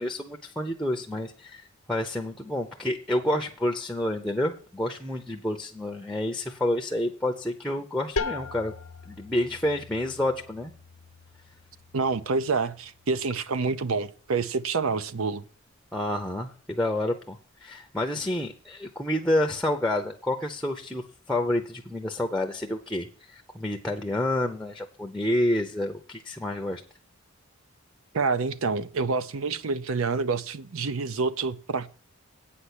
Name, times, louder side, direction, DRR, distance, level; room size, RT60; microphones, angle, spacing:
voice 1, 0.0-8.7 9.1-10.7 15.9-26.8, left 1 dB, 5° left, 0.6 m, -29 dB
sound 1, 8.2-13.7, left 4 dB, 85° left, 0.8 m, -39 dB
voice 2, 11.9-15.4 28.1-31.9, right 4 dB, 75° right, 0.6 m, -27 dB
8.7 x 5.8 x 8.1 m
head